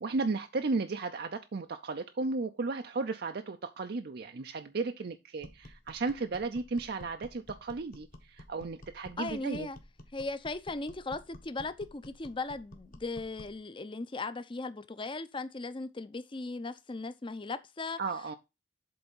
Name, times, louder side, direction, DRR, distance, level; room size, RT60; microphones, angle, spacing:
voice 1, 0.0-9.7 18.0-18.3, right 3 dB, 60° right, 0.5 m, -34 dB
sound 1, 5.4-13.6, equal, 50° left, 1.4 m, -51 dB
voice 2, 9.2-9.8 10.1-18.0, left 3 dB, 30° left, 0.6 m, -38 dB
7.8 x 3.5 x 5.5 m
head